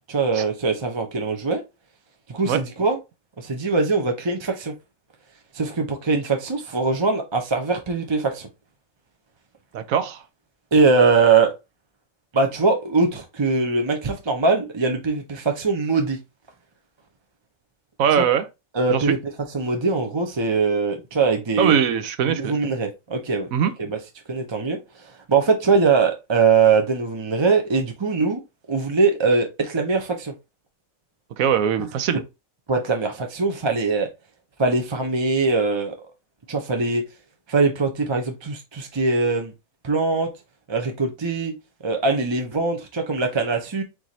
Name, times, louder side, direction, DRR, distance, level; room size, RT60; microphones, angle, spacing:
voice 1, 0.1-1.6 2.3-3.0 3.4-4.7 5.5-8.5 10.7-11.5 12.3-16.2 18.2-18.3 18.7-19.2 19.5-21.8 22.3-23.5 23.8-24.0 24.3-24.8 25.3-28.4 28.7-30.3 32.7-34.1 34.6-35.9 36.5-37.0 37.5-39.5 39.8-40.3 40.7-41.5 41.8-43.8, right 4 dB, 30° right, 0.5 m, -21 dB
voice 2, 9.7-10.2 18.0-18.4 18.9-19.1 21.6-22.7 23.5-23.7 31.4-32.2, right 8 dB, 80° right, 1.2 m, -21 dB
4.7 x 4.1 x 2.7 m
omnidirectional pair, 1.5 m